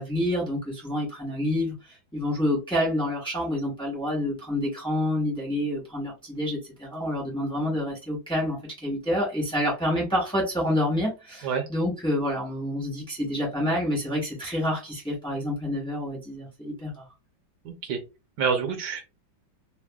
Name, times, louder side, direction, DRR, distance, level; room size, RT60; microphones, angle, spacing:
voice 1, 0.0-1.7 2.1-17.1, left 1 dB, 5° left, 0.6 m, -28 dB
voice 2, 17.6-18.0 18.4-19.1, right 6 dB, 65° right, 1.3 m, -27 dB
3.4 x 2.2 x 2.3 m
omnidirectional pair, 2.1 m